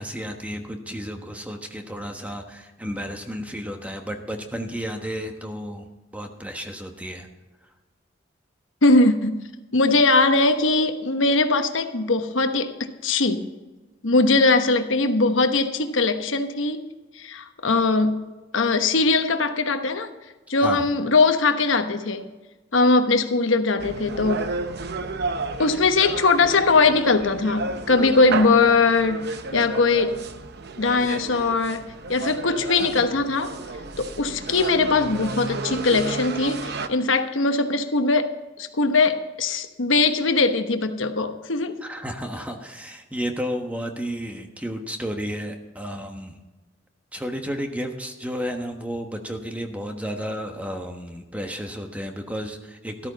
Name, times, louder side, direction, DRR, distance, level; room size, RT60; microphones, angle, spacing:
voice 1, 0.0-7.3 20.6-20.8 41.8-46.4 47.1-53.1, equal, 10° right, 4 dB, 1.2 m, -32 dB
voice 2, 8.8-9.4 9.7-12.7 13.0-13.5 14.0-16.8 17.1-18.3 18.5-20.1 20.5-22.3 22.7-24.5 25.6-30.2 30.8-33.5 34.0-41.8, left 3 dB, 85° left, 7 dB, 1.1 m, -21 dB
sound 1, 23.8-36.9, right 3 dB, 60° right, 0.8 m, -32 dB
13.5 x 13.0 x 4.1 m, 1.2 s
head